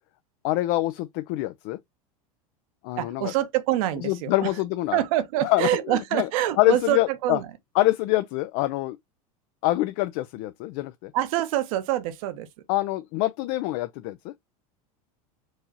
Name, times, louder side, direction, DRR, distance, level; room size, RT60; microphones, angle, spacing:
voice 1, 0.4-1.8 2.8-3.3 4.0-5.0 5.4-6.3 6.6-7.4 7.8-9.0 9.6-11.1 12.7-14.3, left 18 dB, 55° left, 0.4 m, -25 dB
voice 2, 3.0-4.5 4.9-7.5 11.1-12.5, right 13 dB, 65° right, 0.9 m, -26 dB
4.6 x 2.8 x 2.7 m
hypercardioid pair, 110°, 19 cm